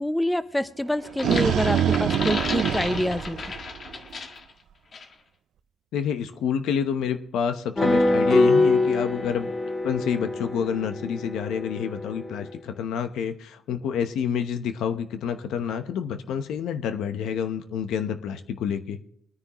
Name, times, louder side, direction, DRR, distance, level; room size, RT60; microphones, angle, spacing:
voice 1, 0.0-3.5, left 1 dB, 5° left, 11 dB, 0.7 m, -27 dB
sound 1, 0.9-4.1, right 10 dB, 70° right, 0.4 m, -25 dB
sound 2, 1.0-4.5 4.9-5.1, left 4 dB, 50° left, 1.7 m, -33 dB
voice 2, 5.9-9.5 9.8-19.0, left 7 dB, 80° left, 8 dB, 0.9 m, -28 dB
sound 3, 7.8-12.5, left 2 dB, 25° left, 2.2 m, -24 dB
23.0 x 9.7 x 3.0 m, 0.71 s
cardioid pair, 90°, 0 cm